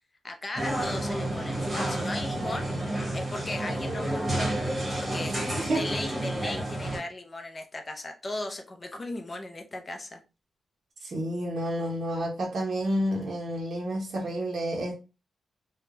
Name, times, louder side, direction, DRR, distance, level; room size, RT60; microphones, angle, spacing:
voice 1, 0.2-2.7 3.1-4.5 4.9-10.2, left 2 dB, 25° left, 0.5 m, -37 dB
sound 1, 0.5-7.0, right 1 dB, 15° right, 1.3 m, -30 dB
voice 2, 11.0-14.9, right 1 dB, 50° right, 0.6 m, -29 dB
2.3 x 2.1 x 3.1 m
wide cardioid pair, 160°, 0 cm